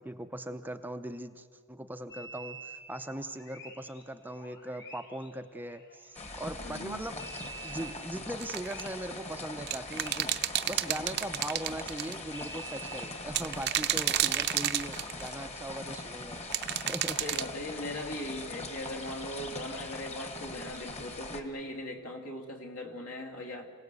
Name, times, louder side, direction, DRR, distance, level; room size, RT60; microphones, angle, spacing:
voice 1, 0.0-7.2 7.6-10.3 10.7-16.4 16.9-17.2, right 1 dB, 10° right, 8 dB, 0.6 m, -40 dB
sound 1, 2.1-6.8 7.2-12.0 12.3-14.0 14.8-14.9, right 3 dB, 50° left, 2.7 m, -49 dB
sound 2, 6.1-21.4, left 2 dB, 30° left, 1.6 m, -42 dB
voice 2, 6.6-7.1 17.2-23.7, left 1 dB, 70° left, 3 dB, 2.6 m, -39 dB
sound 3, 8.4-8.9 9.7-12.1 13.3-15.3 16.5-17.5, right 12 dB, 50° right, 0.7 m, -30 dB
27.0 x 17.5 x 8.2 m, 2.3 s
head